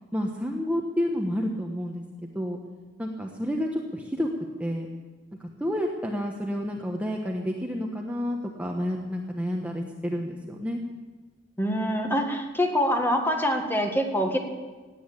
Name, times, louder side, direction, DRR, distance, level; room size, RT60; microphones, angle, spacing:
voice 1, 0.1-2.6 3.0-4.3 4.6-4.9 5.4-10.8, equal, 10° right, 0 dB, 1.2 m, -30 dB
voice 2, 11.6-14.4, equal, 10° left, 3 dB, 1.8 m, -25 dB
17.5 x 9.4 x 8.5 m, 1.3 s
head